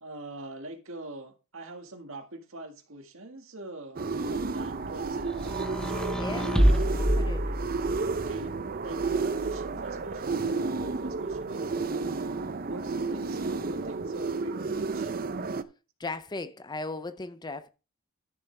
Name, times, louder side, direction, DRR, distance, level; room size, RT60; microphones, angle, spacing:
voice 1, 0.0-5.5 8.1-8.5 8.8-11.7 12.6-15.1, right 2 dB, 65° right, 1.9 m, -43 dB
sound 1, 4.0-15.6, right 4 dB, 40° right, 0.7 m, -31 dB
sound 2, 5.4-8.1 9.0-10.0, equal, 5° left, 0.9 m, -27 dB
voice 2, 6.0-7.5 16.0-17.7, left 3 dB, 20° left, 0.5 m, -38 dB
13.0 x 7.1 x 3.4 m
head